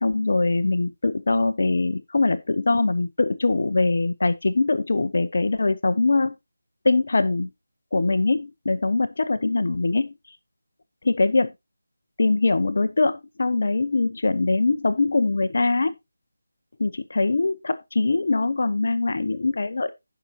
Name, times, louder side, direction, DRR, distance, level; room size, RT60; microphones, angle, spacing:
voice 1, 0.0-6.3 6.8-7.5 7.9-10.1 11.1-11.5 12.2-15.9 16.8-19.9, left 3 dB, 55° left, 0.8 m, -22 dB
15.0 x 5.8 x 2.8 m
figure-of-eight pair, 160°, 0 cm